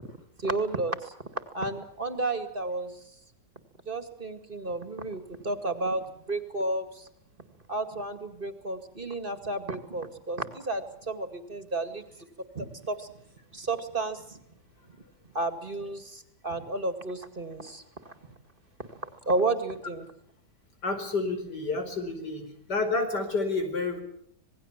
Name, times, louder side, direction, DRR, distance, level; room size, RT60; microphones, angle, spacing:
voice 1, 0.4-1.1 1.5-3.0 3.9-7.1 7.7-12.0 12.5-13.1 13.5-14.4 15.3-18.1 19.0-20.1, right 2 dB, 30° right, 9 dB, 2.3 m, -32 dB
voice 2, 20.8-24.0, left 3 dB, 90° left, 6 dB, 5.3 m, -29 dB
27.0 x 19.5 x 7.4 m, 0.67 s
omnidirectional pair, 1.8 m